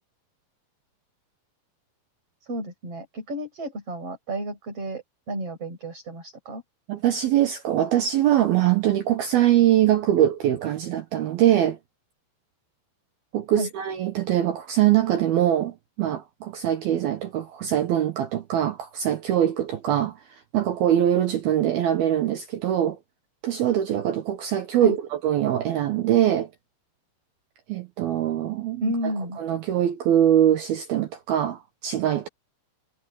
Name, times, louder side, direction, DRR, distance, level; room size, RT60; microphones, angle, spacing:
voice 1, 2.4-6.6 13.5-13.7 24.8-25.0 28.8-29.4, right 1 dB, 30° right, 7.7 m, -32 dB
voice 2, 6.9-11.8 13.3-20.2 20.5-23.0 23.4-26.5 27.7-29.1 29.4-32.3, right 11 dB, 70° right, 2.3 m, -23 dB
omnidirectional pair, 5.8 m